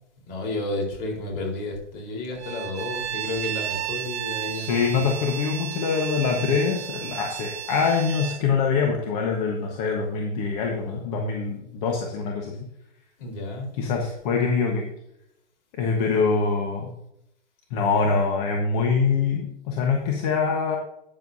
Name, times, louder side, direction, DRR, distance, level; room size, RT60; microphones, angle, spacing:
voice 1, 0.3-5.0 13.2-13.7, left 2 dB, 50° left, 0 dB, 4.1 m, -31 dB
Bowed string instrument, 2.4-8.4, right 11 dB, 60° right, 1.0 m, -33 dB
voice 2, 4.5-12.7 13.8-14.9 15.7-16.9 17.7-20.8, left 5 dB, 30° left, 1 dB, 1.3 m, -24 dB
12.5 x 9.3 x 2.7 m, 0.80 s
hypercardioid pair, 155°, 36 cm